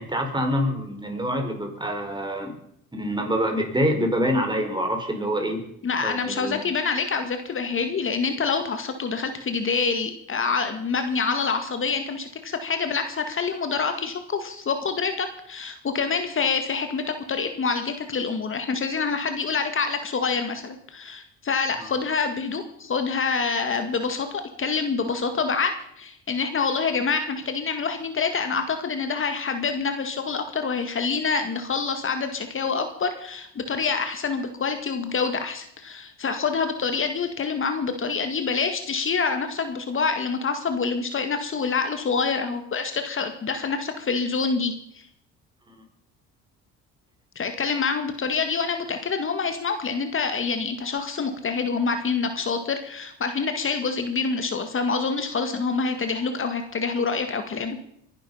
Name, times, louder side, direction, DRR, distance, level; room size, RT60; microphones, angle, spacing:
voice 1, 0.0-2.5 2.9-5.7 6.0-6.6 21.8-21.9, equal, 15° right, 3 dB, 4.9 m, -26 dB
voice 2, 5.8-45.1 47.4-57.8, left 5 dB, 40° left, 7 dB, 2.0 m, -26 dB
23.0 x 11.0 x 5.7 m, 0.72 s
supercardioid pair, 80°, 31 cm